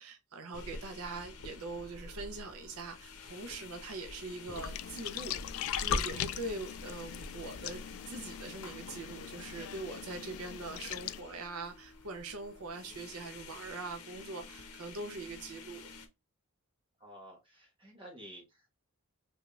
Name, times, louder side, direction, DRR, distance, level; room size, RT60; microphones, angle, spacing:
voice 1, 0.0-16.0, right 3 dB, 75° right, 0.6 m, -43 dB
sound 1, 0.5-16.1, left 2 dB, 85° left, 0.8 m, -46 dB
sound 2, 4.6-11.2, left 10 dB, 65° left, 0.3 m, -40 dB
voice 2, 17.0-18.7, equal, 25° right, 1.3 m, -51 dB
3.5 x 3.1 x 2.3 m
head